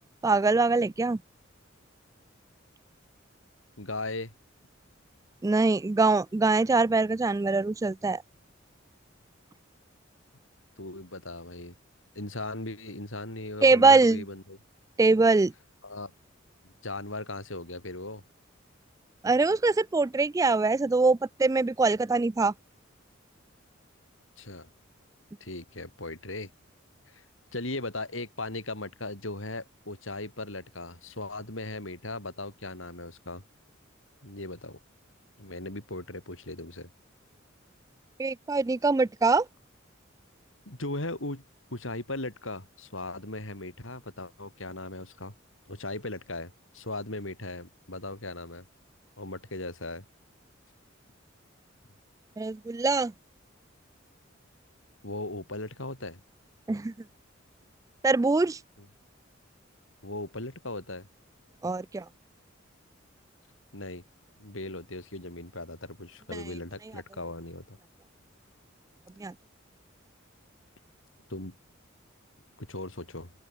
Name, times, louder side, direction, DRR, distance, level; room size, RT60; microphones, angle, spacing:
voice 1, 0.2-1.2 5.4-8.2 13.6-14.2 15.0-15.5 19.2-22.5 38.2-39.5 52.4-53.1 56.7-56.9 58.0-58.6 61.6-62.0 69.2-69.3, right 3 dB, 15° right, 0.3 m, -23 dB
voice 2, 3.8-4.3 10.8-11.7 12.1-14.6 15.8-16.1 16.6-18.2 24.4-24.7 25.4-26.5 27.1-27.2 27.5-33.4 34.2-34.8 35.4-36.9 40.7-41.4 41.7-45.3 45.7-48.7 49.2-50.0 55.0-56.2 58.8-58.9 60.0-61.1 63.7-64.0 64.4-67.8 71.3-71.6 72.6-73.3, left 2 dB, 80° left, 6.5 m, -38 dB
open air
head